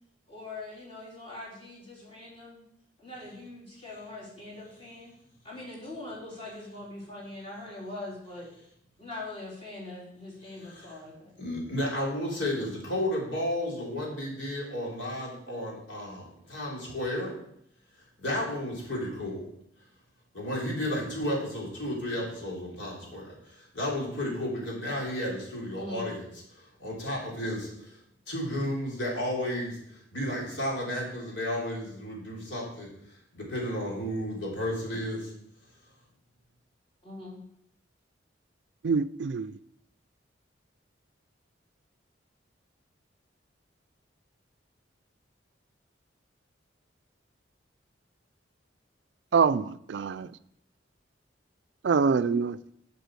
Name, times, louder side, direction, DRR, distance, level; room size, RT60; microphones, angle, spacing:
voice 1, 0.3-2.6 3.0-5.1 5.4-8.5 9.0-11.3 25.8-26.1 37.0-37.4, left 2 dB, 30° left, 3.8 m, -42 dB
voice 2, 10.6-10.9 11.4-17.4 18.2-19.5 20.3-26.3 26.8-28.0 28.3-32.9 33.3-35.3, left 1 dB, 75° left, 3.4 m, -33 dB
voice 3, 38.8-39.6 49.3-50.2 51.8-52.8, right 5 dB, 70° right, 0.4 m, -25 dB
8.1 x 6.8 x 6.4 m
head